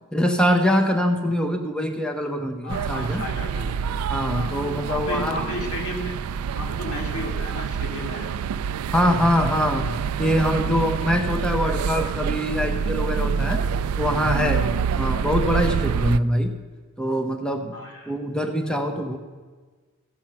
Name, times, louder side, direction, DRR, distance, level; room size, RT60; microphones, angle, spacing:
voice 1, 0.1-3.2 4.1-5.5 8.9-13.6 14.0-16.5 17.0-17.8 18.1-19.2, equal, 5° left, 5 dB, 0.7 m, -23 dB
voice 2, 2.6-3.9 4.3-6.1 6.5-8.3 14.4-14.8 15.9-16.1 17.7-18.1, left 1 dB, 90° left, -1 dB, 2.8 m, -34 dB
sound 1, 2.7-16.2, right 6 dB, 85° right, 0.3 m, -27 dB
15.5 x 7.1 x 5.9 m, 1.4 s
head